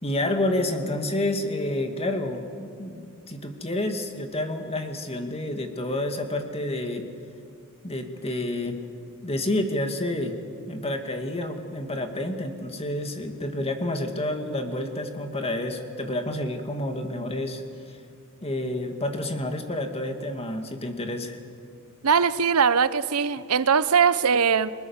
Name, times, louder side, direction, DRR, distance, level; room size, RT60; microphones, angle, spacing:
voice 1, 0.0-7.1 7.8-8.8 9.2-10.4 10.7-17.6 17.9-18.0 18.4-21.4, left 1 dB, 25° left, 5 dB, 2.2 m, -29 dB
voice 2, 22.0-24.7, right 6 dB, 80° right, 15 dB, 0.8 m, -21 dB
30.0 x 22.0 x 7.3 m, 2.4 s
head